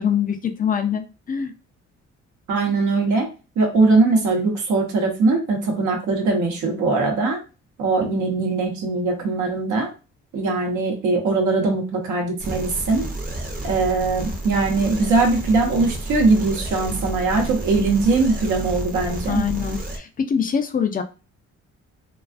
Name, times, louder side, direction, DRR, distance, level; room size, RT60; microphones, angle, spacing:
voice 1, 0.0-1.5 19.3-21.0, left 7 dB, 30° left, 8 dB, 0.4 m, -24 dB
voice 2, 2.5-3.3 3.6-7.4 7.8-9.9 10.3-13.1 13.6-19.4, right 3 dB, 75° right, 1 dB, 0.9 m, -21 dB
sound 1, 12.4-20.0, right 1 dB, 30° right, 0.7 m, -31 dB
2.4 x 2.3 x 2.4 m, 0.32 s
cardioid pair, 90°, 30 cm